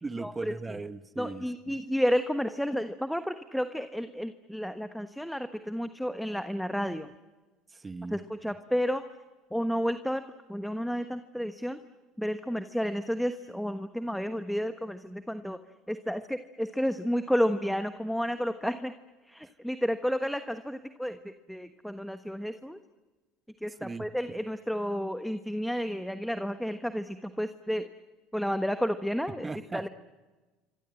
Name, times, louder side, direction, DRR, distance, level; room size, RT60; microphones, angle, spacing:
voice 1, 0.0-1.8 7.7-8.2 19.4-19.5 23.8-24.1 29.3-29.9, right 3 dB, 20° right, 12 dB, 1.5 m, -38 dB
voice 2, 1.2-7.1 8.1-9.0 9.5-10.2 10.5-11.8 12.2-15.6 15.9-18.9 19.3-22.8 23.6-27.9 28.3-29.4 29.7-29.9, equal, ahead, 9 dB, 1.2 m, -31 dB
27.5 x 24.5 x 7.8 m, 1.2 s
hypercardioid pair, 80°, 0 cm